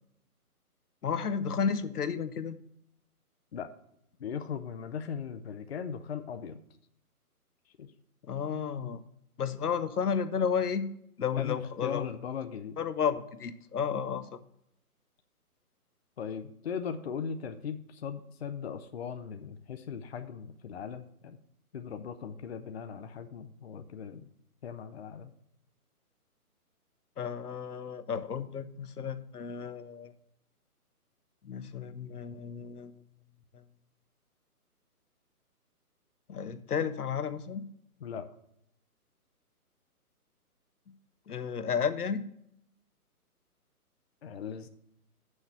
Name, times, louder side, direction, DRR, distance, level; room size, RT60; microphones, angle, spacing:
voice 1, 1.0-2.6 8.2-9.0 9.4-10.9 11.2-12.1 12.8-14.4 27.2-30.1 31.4-32.9 33.5-33.6 36.3-37.7 41.3-42.2, left 6 dB, 75° left, 12 dB, 0.9 m, -32 dB
voice 2, 4.2-6.6 7.8-7.9 11.4-12.8 16.2-21.4 21.7-24.3 24.6-25.3 38.0-38.3 44.2-44.7, left 7 dB, 45° left, 8 dB, 0.6 m, -38 dB
6.7 x 6.4 x 7.3 m, 0.74 s
figure-of-eight pair, 140°, 46 cm